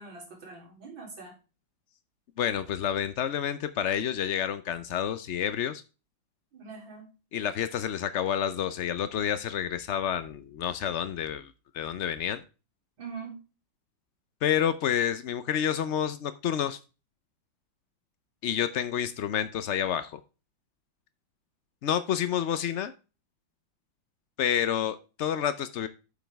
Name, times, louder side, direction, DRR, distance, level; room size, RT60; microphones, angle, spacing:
voice 1, 0.0-1.4 6.5-7.1 13.0-13.4, right 4 dB, 80° right, 0 dB, 4.2 m, -43 dB
voice 2, 2.4-5.8 7.3-12.4 14.4-16.8 18.4-20.2 21.8-22.9 24.4-25.9, left 9 dB, 90° left, 12 dB, 0.6 m, -29 dB
9.0 x 7.1 x 3.4 m, 0.31 s
omnidirectional pair, 2.1 m